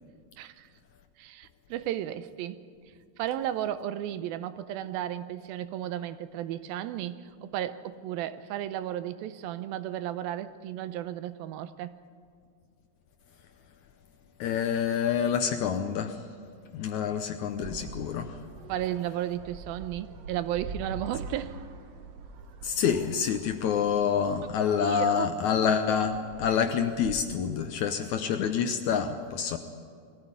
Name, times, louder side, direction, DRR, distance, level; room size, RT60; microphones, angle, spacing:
voice 1, 0.4-0.7 1.2-2.6 3.2-12.0 18.7-21.6 24.8-25.3, right 12 dB, 85° right, 13 dB, 2.6 m, -34 dB
voice 2, 14.4-16.2 16.7-18.4 22.6-29.6, left 7 dB, 70° left, 7 dB, 1.8 m, -27 dB
sound 1, 17.5-27.2, right 4 dB, 60° right, 1.8 m, -45 dB
22.0 x 15.0 x 9.7 m, 2.3 s
omnidirectional pair, 4.2 m